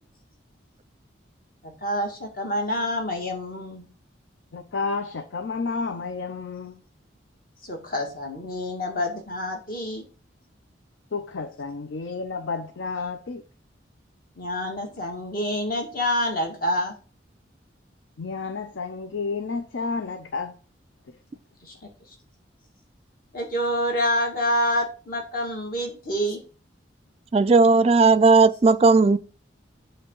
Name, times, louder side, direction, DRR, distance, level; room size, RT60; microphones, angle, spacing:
voice 1, 1.8-3.9 7.6-10.0 14.4-16.9 21.6-21.9 23.3-26.4, equal, 50° left, 1.8 m, -27 dB
voice 2, 4.5-6.8 11.1-13.4 18.2-20.6, left 4 dB, 80° left, 0.6 m, -31 dB
voice 3, 27.3-29.2, right 4 dB, 30° right, 0.3 m, -16 dB
7.9 x 3.4 x 5.3 m
head